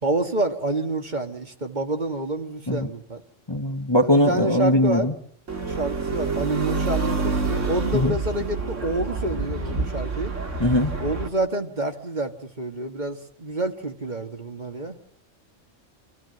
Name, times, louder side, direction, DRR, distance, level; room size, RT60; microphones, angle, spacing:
voice 1, 0.0-3.2 4.0-5.1 5.7-10.3 11.0-14.9, right 2 dB, 35° right, 5 dB, 1.9 m, -28 dB
voice 2, 3.5-5.1 7.9-8.1 10.6-10.9, left 1 dB, 20° left, 7 dB, 1.1 m, -20 dB
sound 1, 5.5-11.3, right 4 dB, 75° right, 2.6 m, -27 dB
26.0 x 16.0 x 7.9 m, 0.70 s
omnidirectional pair, 1.3 m